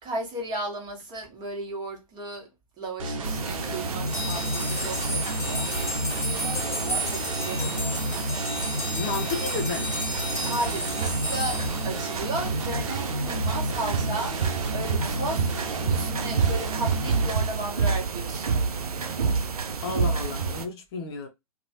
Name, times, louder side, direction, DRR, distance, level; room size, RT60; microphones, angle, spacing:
voice 1, 0.0-2.5 2.8-5.7 7.0-8.0 10.4-18.5, right 2 dB, 20° right, 1.2 m, -35 dB
sound 1, 3.0-17.3, equal, 60° right, 0.9 m, -32 dB
sound 2, 3.2-20.7, right 5 dB, 75° right, 0.5 m, -30 dB
sound 3, 4.1-12.6, equal, 15° left, 1.1 m, -33 dB
voice 2, 8.9-9.9 19.8-21.3, left 4 dB, 45° left, 0.7 m, -32 dB
2.9 x 2.3 x 2.7 m
figure-of-eight pair, 115°, 19 cm